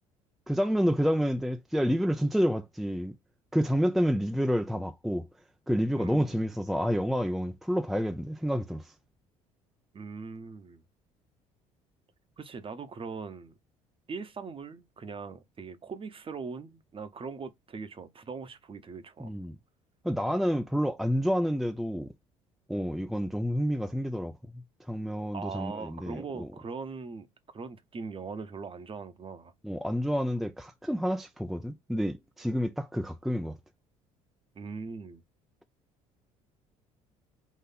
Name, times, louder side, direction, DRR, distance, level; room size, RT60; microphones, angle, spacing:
voice 1, 0.5-3.1 3.5-5.3 5.7-8.9 19.2-19.6 20.0-22.1 22.7-24.6 24.9-26.5 29.6-33.6, equal, ahead, 0.4 m, -29 dB
voice 2, 6.0-6.4 9.9-10.8 12.4-13.6 14.1-19.3 25.3-27.3 27.5-29.5 34.5-35.2, right 5 dB, 30° right, 0.9 m, -40 dB
4.1 x 2.6 x 4.1 m
hypercardioid pair, 60°, 17 cm